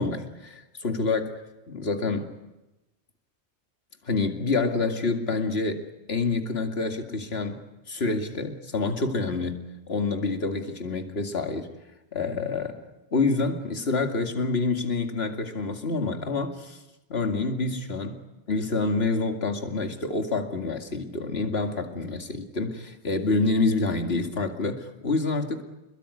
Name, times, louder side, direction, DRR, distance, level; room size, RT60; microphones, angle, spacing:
voice 1, 0.0-1.4 1.7-2.3 4.0-5.8 6.1-7.6 7.9-11.7 12.1-12.9 13.1-16.8 17.1-18.2 18.5-25.6, left 3 dB, 65° left, 5 dB, 2.5 m, -27 dB
27.5 x 22.0 x 9.8 m, 1.0 s
omnidirectional pair, 1.1 m